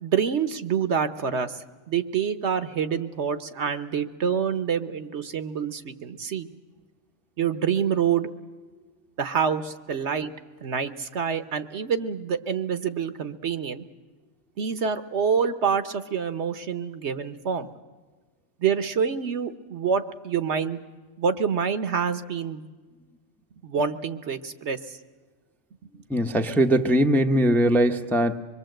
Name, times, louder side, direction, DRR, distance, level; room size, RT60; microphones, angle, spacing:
voice 1, 0.0-6.5 7.4-8.3 9.2-10.3 10.6-13.8 14.6-17.7 18.6-20.8 21.2-22.7 23.6-25.0, right 7 dB, 60° right, 11 dB, 1.2 m, -27 dB
voice 2, 26.1-28.4, right 1 dB, ahead, 5 dB, 0.7 m, -21 dB
25.0 x 22.0 x 7.8 m, 1.3 s
omnidirectional pair, 1.4 m